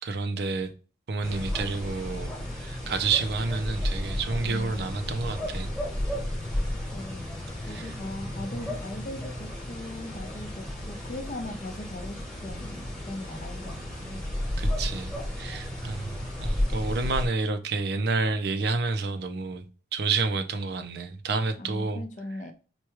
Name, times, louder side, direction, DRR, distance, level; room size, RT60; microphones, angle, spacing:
voice 1, 0.0-0.7 1.1-5.7 7.7-7.9 14.6-22.0, right 4 dB, 55° right, 0.5 m, -29 dB
sound 1, 1.2-17.3, left 1 dB, 5° left, 1.1 m, -33 dB
voice 2, 6.9-7.3 7.6-14.2 21.6-22.5, left 1 dB, 40° left, 0.6 m, -39 dB
4.6 x 2.2 x 3.0 m
head